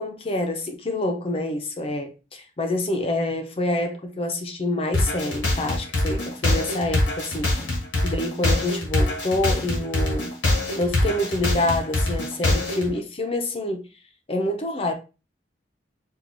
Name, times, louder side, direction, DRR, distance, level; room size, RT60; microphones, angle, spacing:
voice 1, 0.0-7.6 8.0-10.3 10.8-13.8 14.3-14.9, left 1 dB, 30° left, 0.5 m, -27 dB
sound 1, 4.9-12.9, left 2 dB, 85° left, 1.2 m, -24 dB
4.4 x 2.3 x 2.6 m
head